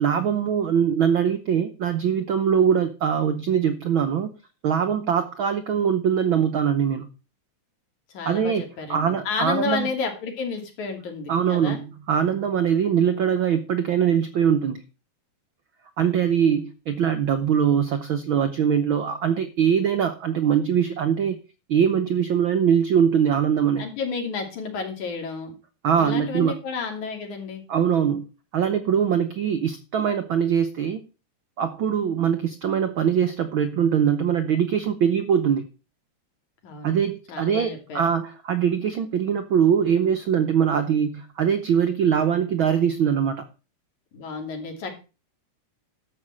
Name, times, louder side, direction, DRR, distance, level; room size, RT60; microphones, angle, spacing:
voice 1, 0.0-4.3 4.6-7.1 8.2-8.6 8.9-9.9 11.3-14.8 16.0-21.4 21.7-23.8 25.8-26.5 27.7-28.3 28.5-31.0 31.6-35.6 36.8-43.4, right 8 dB, 70° right, 8 dB, 1.2 m, -22 dB
voice 2, 8.1-11.8 23.8-25.5 26.0-27.6 36.6-37.0 37.3-38.0 44.1-44.9, left 5 dB, 75° left, 3 dB, 4.1 m, -31 dB
12.5 x 5.3 x 7.6 m, 0.32 s
omnidirectional pair, 3.5 m